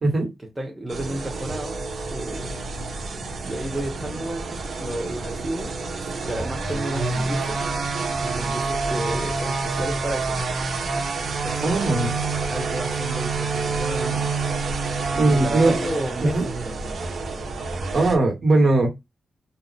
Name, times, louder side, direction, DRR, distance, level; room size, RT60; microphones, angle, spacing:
voice 1, 0.4-2.6 3.4-5.7 6.2-7.6 8.2-10.4 11.4-12.1 12.5-14.3 15.1-17.0, right 1 dB, 15° right, 0.9 m, -32 dB
sound 1, 0.9-18.2, right 3 dB, 70° right, 1.0 m, -28 dB
voice 2, 11.6-12.1 15.1-15.8 16.2-16.5 17.9-18.9, right 2 dB, 50° right, 1.6 m, -19 dB
2.7 x 2.0 x 4.0 m
cardioid pair, 85°, 0 cm